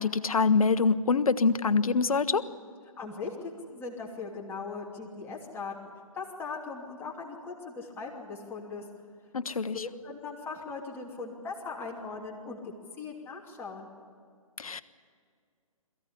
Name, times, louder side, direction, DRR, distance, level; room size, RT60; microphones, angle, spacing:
voice 1, 0.0-2.5 9.3-9.8 14.6-14.8, left 4 dB, 75° left, 12 dB, 1.1 m, -25 dB
voice 2, 3.0-3.3 3.7-8.8 9.7-13.9, left 4 dB, 10° left, -2 dB, 2.8 m, -39 dB
22.5 x 15.5 x 9.9 m, 2.2 s
figure-of-eight pair, 135°, 19 cm